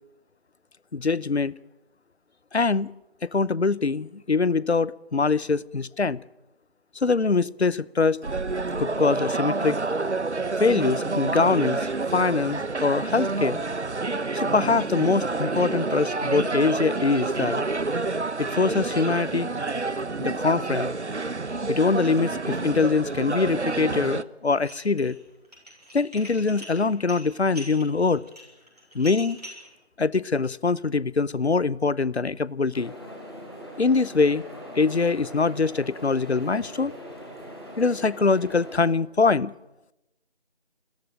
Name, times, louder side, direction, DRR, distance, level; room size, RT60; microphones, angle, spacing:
voice 1, 0.9-1.5 2.5-2.9 3.3-6.2 6.9-8.2 8.8-9.8 10.6-13.6 14.3-17.6 18.4-19.5 20.2-20.9 21.7-25.2 25.9-28.2 28.9-29.4 30.0-32.9 33.8-34.4 34.8-36.9 37.8-39.5, left 4 dB, 70° left, 0.8 m, -23 dB
sound 1, 8.2-24.2, right 3 dB, 90° right, 1.1 m, -28 dB
Dishes pots and pans, 24.5-25.1 25.4-29.7, equal, 35° right, 6.4 m, -43 dB
sound 2, 32.7-38.9, equal, 20° left, 3.4 m, -41 dB
28.5 x 14.5 x 9.0 m
figure-of-eight pair, 180°, 33 cm